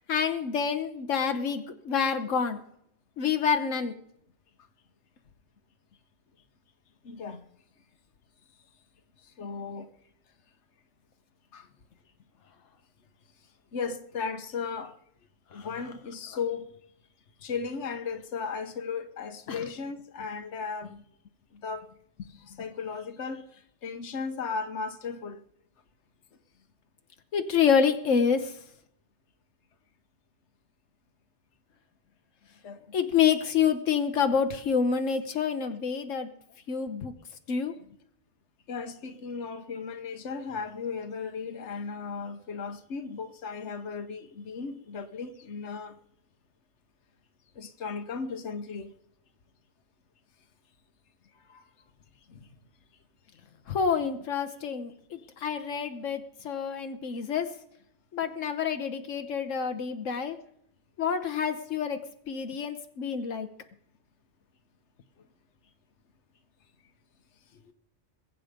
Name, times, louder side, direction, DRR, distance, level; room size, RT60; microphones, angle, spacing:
voice 1, 0.1-2.6 3.2-3.9 15.5-15.7 19.5-19.6 27.3-28.5 32.9-36.3 36.7-37.1 37.5-37.7 53.7-57.5 58.1-60.4 61.0-62.0 62.3-63.5, left 7 dB, 85° left, 1.3 m, -27 dB
voice 2, 7.0-7.4 9.4-9.9 11.5-11.7 13.7-14.9 15.5-16.7 17.4-20.9 21.5-21.9 22.5-25.4 32.6-32.9 38.7-46.0 47.6-48.9 51.5-51.6 52.3-52.4 67.6-67.7, left 5 dB, 65° left, 1.4 m, -36 dB
22.0 x 8.7 x 5.1 m
omnidirectional pair, 1.3 m